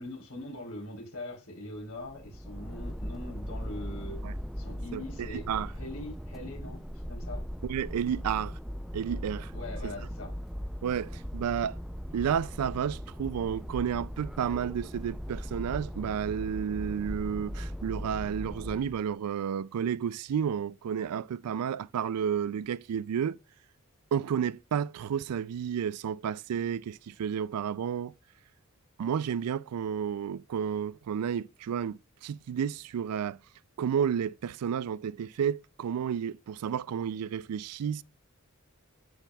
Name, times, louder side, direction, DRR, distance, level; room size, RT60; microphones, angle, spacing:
voice 1, 0.0-4.2 4.6-5.4 5.8-7.4 9.5-10.3, left 1 dB, 70° left, 3.6 m, -42 dB
sound 1, 1.8-19.0, equal, ahead, 0.4 m, -39 dB
voice 2, 5.3-5.7 7.6-8.6 8.9-9.5 9.8-9.9 10.8-11.8 12.1-23.4 24.1-28.1 29.0-33.4 33.8-38.0, right 8 dB, 90° right, 0.3 m, -31 dB
13.0 x 5.8 x 2.3 m
head